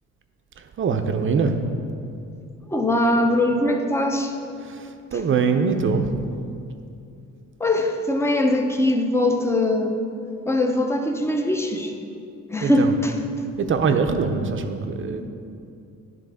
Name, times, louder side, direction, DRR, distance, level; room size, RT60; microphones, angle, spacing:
voice 1, 0.6-1.6 4.6-6.1 12.6-12.9 13.6-15.3, right 5 dB, 40° right, 6 dB, 0.7 m, -23 dB
voice 2, 2.7-4.3 7.6-10.0 10.5-11.9 12.5-13.1, left 1 dB, 10° left, 3 dB, 0.8 m, -21 dB
10.5 x 3.7 x 5.0 m, 2.5 s
cardioid pair, 90°, 30 cm